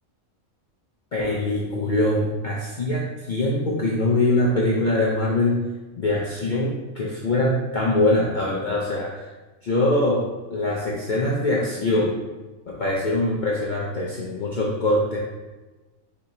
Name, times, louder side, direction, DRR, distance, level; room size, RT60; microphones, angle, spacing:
voice 1, 1.1-5.6 6.0-9.3 9.6-12.2 12.7-15.2, left 2 dB, 55° left, -4 dB, 0.5 m, -23 dB
4.6 x 2.9 x 3.8 m, 1.2 s
omnidirectional pair, 1.4 m